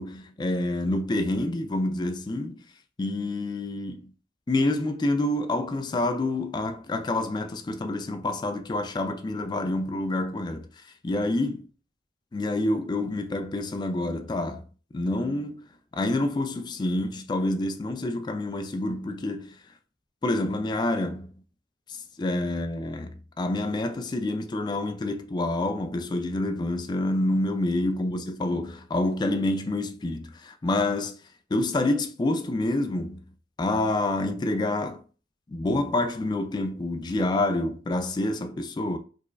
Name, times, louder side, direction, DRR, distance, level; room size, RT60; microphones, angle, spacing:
voice 1, 0.0-2.6 3.0-4.1 4.5-10.7 11.0-11.6 12.3-14.6 14.9-15.6 15.9-19.6 20.2-21.3 21.9-31.2 31.5-33.2 33.6-35.0 35.5-39.0, left 2 dB, 25° left, 0.3 m, -27 dB
4.7 x 2.2 x 2.3 m
head